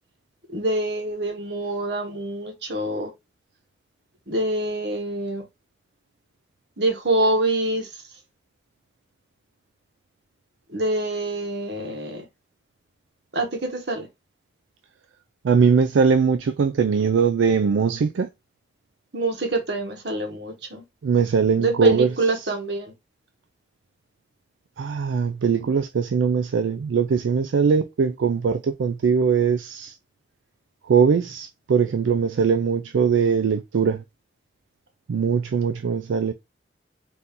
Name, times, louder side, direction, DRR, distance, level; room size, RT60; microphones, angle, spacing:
voice 1, 0.5-3.1 4.3-5.4 6.8-8.0 10.7-12.3 13.3-14.1 15.6-15.8 19.1-20.8 21.6-22.9, right 2 dB, 65° right, 1.2 m, -26 dB
voice 2, 15.4-18.3 21.0-22.1 24.8-30.0 30.9-34.0 35.1-36.3, right 6 dB, 85° right, 0.4 m, -21 dB
4.2 x 2.7 x 3.6 m
head